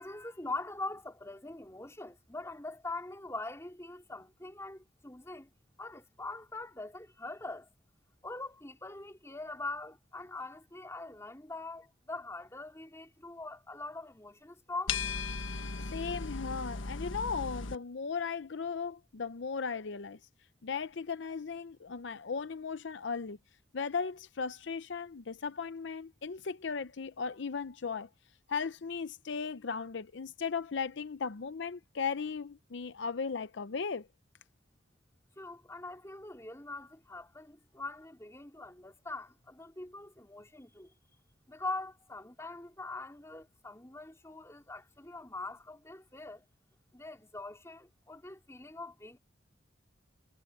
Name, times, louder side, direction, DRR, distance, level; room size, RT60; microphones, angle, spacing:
voice 1, 0.0-5.5 5.8-7.7 8.2-15.0 35.4-40.9 41.5-46.4 46.9-49.2, left 2 dB, 15° left, 3.2 m, -43 dB
sound 1, 14.9-17.8, left 4 dB, 85° left, 1.4 m, -37 dB
voice 2, 15.9-20.2 20.6-23.4 23.7-28.1 28.5-34.1, left 5 dB, 70° left, 0.6 m, -37 dB
head